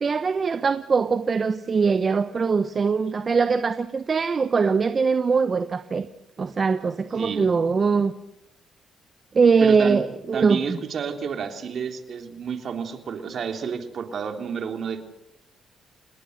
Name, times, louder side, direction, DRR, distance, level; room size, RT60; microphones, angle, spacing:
voice 1, 0.0-6.1 6.4-8.1 9.3-10.8, right 5 dB, 40° right, 10 dB, 1.1 m, -22 dB
voice 2, 7.2-7.5 9.6-10.0 10.3-15.0, right 6 dB, 55° right, 5 dB, 3.4 m, -30 dB
28.5 x 20.0 x 6.7 m, 0.87 s
cardioid pair, 90°, 0 cm